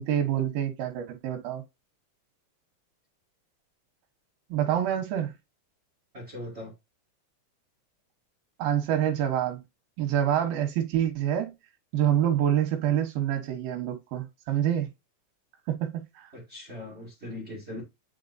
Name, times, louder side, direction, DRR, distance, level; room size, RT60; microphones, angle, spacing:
voice 1, 0.0-1.6 4.5-5.3 8.6-9.6 10.0-11.5 11.9-14.9 15.7-16.3, right 10 dB, 85° right, 2.9 m, -27 dB
voice 2, 6.1-6.7 16.3-17.8, left 1 dB, 60° right, 0.6 m, -40 dB
9.9 x 3.8 x 2.6 m
omnidirectional pair, 4.0 m